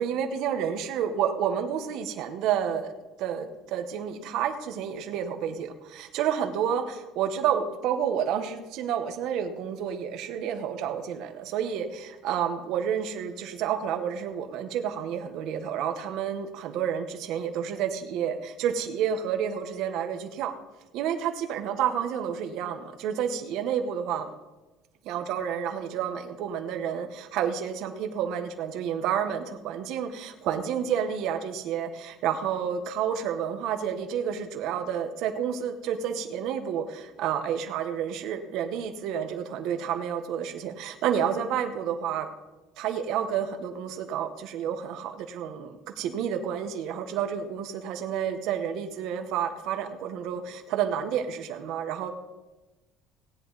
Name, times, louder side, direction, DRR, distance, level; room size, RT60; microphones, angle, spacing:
voice 1, 0.0-2.9 3.2-20.6 20.9-24.3 25.0-42.3 42.8-52.1, right 8 dB, 55° right, 7 dB, 1.0 m, -30 dB
16.5 x 10.0 x 4.0 m, 1.1 s
cardioid pair, 170°, 0 cm